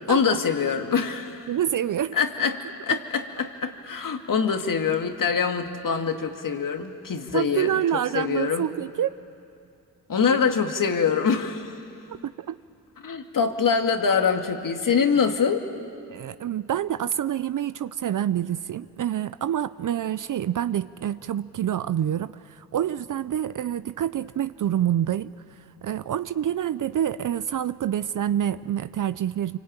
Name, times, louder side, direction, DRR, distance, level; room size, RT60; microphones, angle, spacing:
voice 1, 0.1-1.5 2.1-7.8 8.1-8.7 10.1-11.8 13.0-15.7, left 6 dB, 55° left, 5 dB, 2.3 m, -24 dB
voice 2, 1.5-2.2 2.9-3.0 7.3-9.1 12.2-12.6 16.1-25.3 25.8-29.6, right 10 dB, 55° right, 14 dB, 0.6 m, -27 dB
25.5 x 24.0 x 9.0 m, 2.5 s
supercardioid pair, 55°, 39 cm